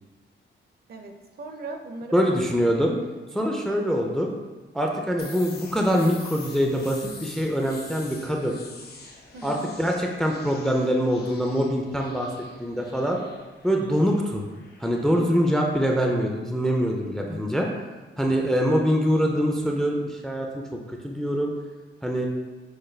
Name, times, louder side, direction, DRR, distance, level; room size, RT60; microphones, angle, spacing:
voice 1, 0.9-2.8 9.3-9.7, right 2 dB, 50° right, 4 dB, 0.5 m, -39 dB
voice 2, 2.1-2.9 3.3-4.3 4.7-8.6 9.4-12.3 12.6-13.2 13.6-14.4 14.8-17.7 18.2-21.5 22.0-22.3, equal, ahead, 1 dB, 0.3 m, -24 dB
sound 1, 5.2-16.8, left 4 dB, 50° left, 0.6 m, -46 dB
6.4 x 2.2 x 3.2 m, 1.3 s
wide cardioid pair, 135°, 21 cm